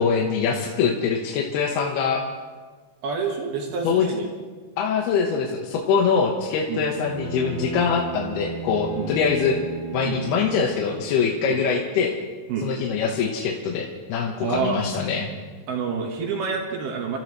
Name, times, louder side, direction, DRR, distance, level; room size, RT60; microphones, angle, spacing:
voice 1, 0.0-2.2 3.8-4.1 4.8-9.6 9.9-12.1 12.6-15.3, left 6 dB, 80° left, 0 dB, 3.2 m, -23 dB
voice 2, 3.0-4.3 6.7-6.8 9.0-9.1 10.0-10.2 11.5-11.6 12.5-12.7 14.4-14.8 15.7-17.2, right 5 dB, 75° right, 1 dB, 3.4 m, -28 dB
Bowed string instrument, 6.9-11.4, right 4 dB, 30° left, 0.9 m, -35 dB
27.5 x 14.5 x 3.2 m, 1.4 s
omnidirectional pair, 4.6 m